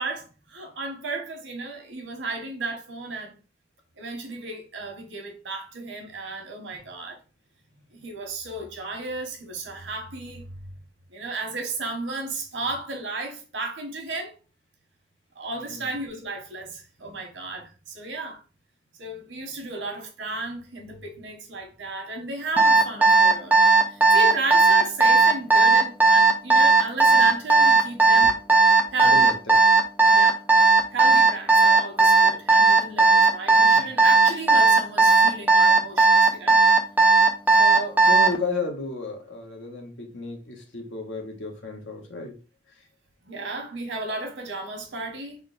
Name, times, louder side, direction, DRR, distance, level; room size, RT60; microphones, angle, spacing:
voice 1, 0.0-3.4 4.0-7.2 7.9-10.5 11.1-14.3 15.3-18.4 19.0-23.6 23.9-28.3 28.9-29.3 30.1-30.4 30.7-36.6 37.5-38.0 43.2-45.4, right 3 dB, 90° right, 1.1 m, -34 dB
voice 2, 15.6-15.9 28.2-28.3 29.0-29.6 33.8-33.9 38.1-42.3, left 3 dB, 85° left, 1.0 m, -33 dB
Alarm, 22.6-38.4, right 4 dB, 10° right, 0.5 m, -16 dB
3.7 x 2.3 x 3.9 m
head